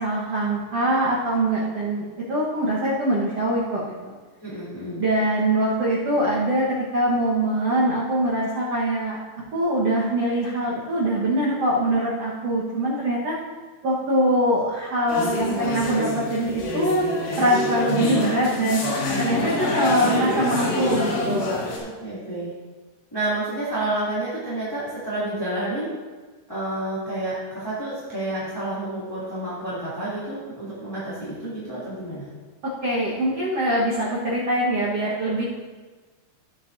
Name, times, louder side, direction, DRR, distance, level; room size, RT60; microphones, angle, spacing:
voice 1, 0.0-4.1 5.0-9.2 9.5-13.4 13.8-17.0 17.4-18.8 19.2-21.8 32.8-35.4, right 1 dB, 75° right, -6 dB, 1.4 m, -23 dB
voice 2, 4.4-5.0 19.9-20.2 22.0-22.5 23.1-25.9 26.5-32.3, right 1 dB, 10° left, -11 dB, 1.6 m, -29 dB
sound 1, 15.1-21.8, left 1 dB, 90° left, 4.6 m, -26 dB
16.0 x 8.2 x 2.7 m, 1.4 s
omnidirectional pair, 5.1 m